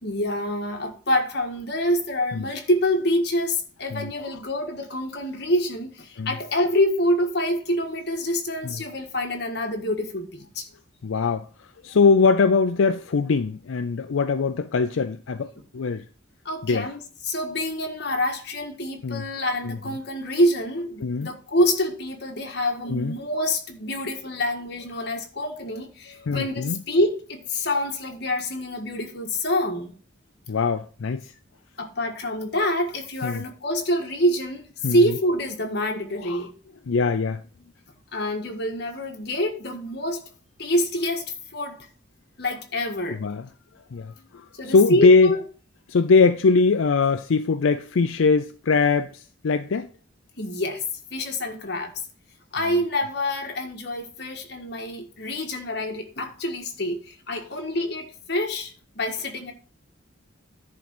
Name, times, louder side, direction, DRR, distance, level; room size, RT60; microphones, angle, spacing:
voice 1, 0.0-10.7 16.4-29.9 31.8-34.6 34.9-36.5 38.1-40.3 40.6-41.2 41.5-41.8 42.4-43.2 44.6-45.4 50.4-50.8 51.1-51.9 52.5-59.5, left 1 dB, 55° left, 1.6 m, -26 dB
voice 2, 3.9-4.4 6.2-6.4 8.6-8.8 11.0-16.1 16.6-16.9 19.0-19.3 19.6-19.8 21.0-21.3 22.9-23.1 24.0-24.1 26.2-26.8 30.5-31.3 33.2-33.4 34.8-35.0 36.2-36.5 36.9-37.4 43.1-43.5 43.9-45.3 45.9-49.9 52.7-52.8, left 4 dB, 80° left, 0.5 m, -22 dB
10.5 x 3.8 x 6.1 m
head